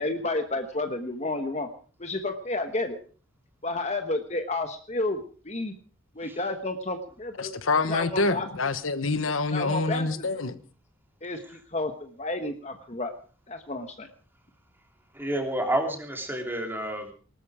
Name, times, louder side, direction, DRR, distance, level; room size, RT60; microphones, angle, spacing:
voice 1, 0.0-1.7 2.0-3.0 3.6-5.7 6.1-8.5 9.5-10.3 11.2-13.1 13.5-14.1, left 2 dB, 35° left, 1.2 m, -31 dB
voice 2, 7.4-10.6, left 3 dB, 85° left, 1.2 m, -26 dB
voice 3, 15.1-17.1, right 1 dB, 10° right, 3.2 m, -29 dB
19.5 x 13.0 x 4.9 m
head